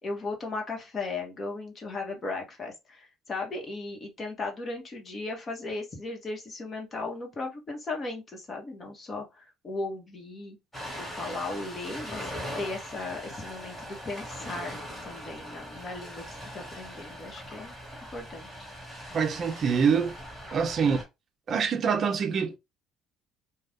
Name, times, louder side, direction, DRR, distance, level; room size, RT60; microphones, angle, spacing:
voice 1, 0.0-10.6 10.9-12.3 12.6-17.8 18.1-18.5 20.8-21.0, left 3 dB, 30° left, 1.1 m, -36 dB
Ocean, 10.7-21.0, equal, 10° left, 1.6 m, -41 dB
voice 2, 19.1-20.1 20.5-21.0 21.5-22.6, right 6 dB, 45° right, 0.5 m, -25 dB
2.6 x 2.3 x 3.4 m
cardioid pair, 130°, 0 cm